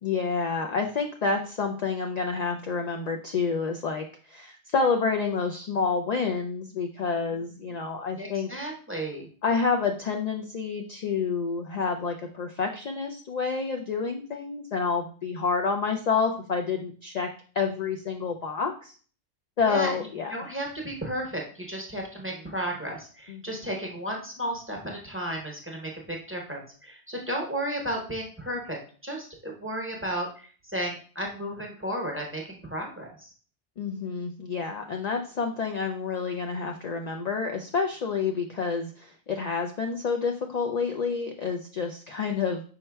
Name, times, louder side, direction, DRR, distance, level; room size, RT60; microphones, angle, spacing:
voice 1, 0.0-8.5 9.4-17.3 17.5-18.9 19.6-20.3 23.3-23.4 33.8-42.6, left 5 dB, 65° left, 3 dB, 0.4 m, -28 dB
voice 2, 8.2-9.3 19.7-20.0 20.3-28.8 29.0-33.3, right 1 dB, 10° right, -1 dB, 0.8 m, -33 dB
5.5 x 4.3 x 2.2 m, 0.41 s
omnidirectional pair, 1.2 m